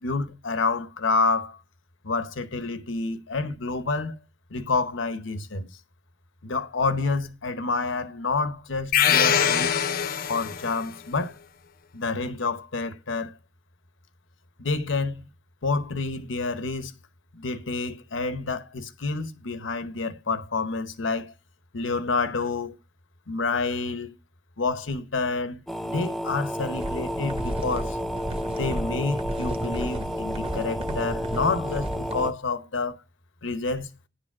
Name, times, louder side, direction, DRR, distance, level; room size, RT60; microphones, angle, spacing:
voice 1, 0.0-1.6 2.0-4.2 4.5-5.7 6.4-9.7 10.3-11.4 11.9-13.3 14.6-15.3 15.6-16.9 17.3-21.3 21.7-22.8 23.3-24.2 24.6-28.0 28.5-33.0 33.4-33.9, left 3 dB, 85° left, 0.9 m, -28 dB
sound 1, 8.9-10.8, left 8 dB, 50° left, 0.6 m, -22 dB
sound 2, 25.7-32.3, equal, ahead, 0.5 m, -31 dB
sound 3, 26.8-32.3, right 1 dB, 30° right, 0.9 m, -34 dB
10.5 x 4.8 x 6.0 m
head